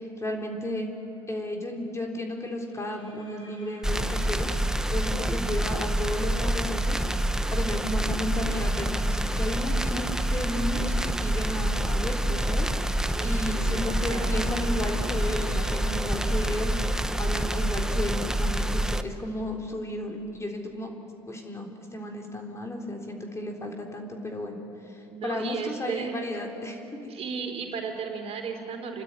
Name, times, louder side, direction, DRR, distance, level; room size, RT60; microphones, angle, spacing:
voice 1, 0.2-0.9 1.3-4.5 4.9-7.0 7.5-20.9 21.3-24.6 24.9-27.1, left 1 dB, 20° left, 1 dB, 3.8 m, -33 dB
sound 1, 0.8-1.1 2.6-7.4 8.2-18.7, left 1 dB, 40° left, 7.3 m, -50 dB
sound 2, 3.8-19.0, right 1 dB, 5° right, 1.0 m, -27 dB
voice 2, 13.0-14.3 25.1-26.2 27.1-29.0, right 5 dB, 50° right, 2 dB, 3.9 m, -35 dB
29.5 x 12.5 x 9.9 m, 2.9 s
supercardioid pair, 85°, 13 cm